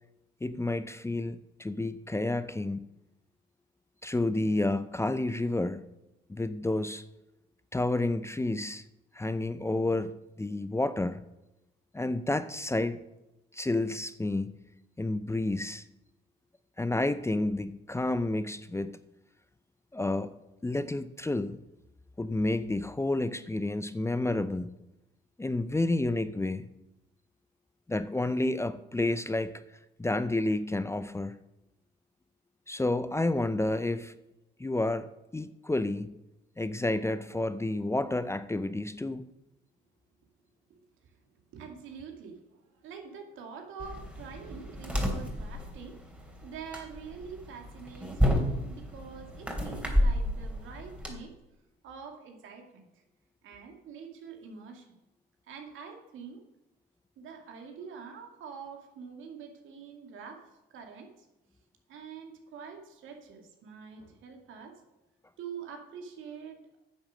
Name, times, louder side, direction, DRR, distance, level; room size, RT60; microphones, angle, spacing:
voice 1, 0.4-2.8 4.0-5.8 6.3-7.0 7.7-8.8 9.1-11.2 11.9-13.0 13.5-14.6 15.0-15.8 16.8-19.0 19.9-20.3 20.6-21.6 22.2-24.7 25.4-26.7 27.9-29.5 30.0-31.3 32.7-34.1 34.6-36.1 36.6-39.3, left 2 dB, 15° left, 0.6 m, -30 dB
voice 2, 41.5-42.4 42.7-51.3 51.8-52.9 53.4-54.9 55.5-56.4 57.2-60.4 60.7-61.1 61.9-64.8 65.4-66.8, right 6 dB, 70° right, 2.4 m, -45 dB
sound 1, 43.8-51.1, equal, 5° right, 3.0 m, -31 dB
9.8 x 7.3 x 6.5 m
supercardioid pair, 65°, 21 cm